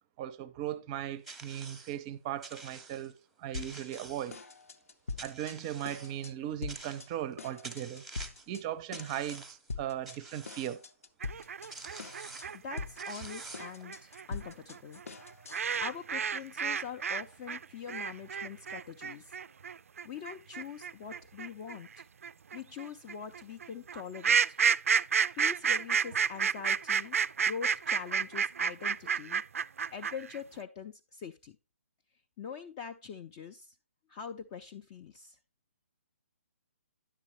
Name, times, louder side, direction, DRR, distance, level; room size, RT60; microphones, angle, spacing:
voice 1, 0.2-4.4 5.2-8.1 8.5-10.8, right 11 dB, 25° right, 0.6 m, -38 dB
sound 1, 1.2-2.0 2.4-3.1 3.5-4.6 5.2-6.2 6.7-7.3 7.6-8.5 8.9-9.7 10.1-10.8 11.4-11.5 11.7-12.6 13.0-13.8, right 3 dB, ahead, 0.9 m, -48 dB
sound 2, 3.5-4.0 4.3-5.6 5.8-6.3 6.6-7.1 7.4-8.6 8.9-9.4 9.7-10.2 10.5-11.7 12.0-12.5 12.8-15.8, left 4 dB, 80° left, 0.8 m, -43 dB
sound 3, 11.2-17.2 17.5-30.4, right 7 dB, 75° right, 0.4 m, -30 dB
voice 2, 12.5-15.0 15.6-19.3 20.0-22.0 22.5-24.6 25.4-27.2 27.4-29.4 29.9-31.6 32.4-33.7 34.1-35.4, left 7 dB, 25° left, 0.4 m, -43 dB
10.0 x 7.4 x 3.0 m
hypercardioid pair, 150°, 8 cm